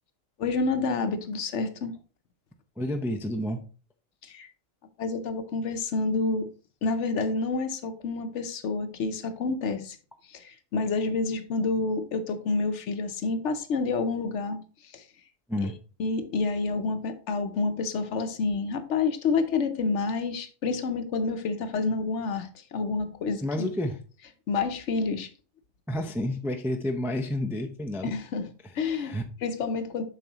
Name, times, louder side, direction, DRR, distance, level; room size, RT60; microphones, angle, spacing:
voice 1, 0.4-1.9 4.2-4.5 5.0-6.5 6.8-10.0 10.3-14.6 14.9-15.0 16.0-23.7 24.5-25.3 28.0-29.1 29.4-30.0, left 4 dB, 65° left, 9 dB, 1.0 m, -28 dB
voice 2, 2.8-3.6 15.5-15.8 23.4-24.0 25.9-28.1 28.8-29.2, left 1 dB, 5° right, 4 dB, 0.3 m, -30 dB
7.2 x 5.3 x 2.9 m, 0.37 s
omnidirectional pair, 1.4 m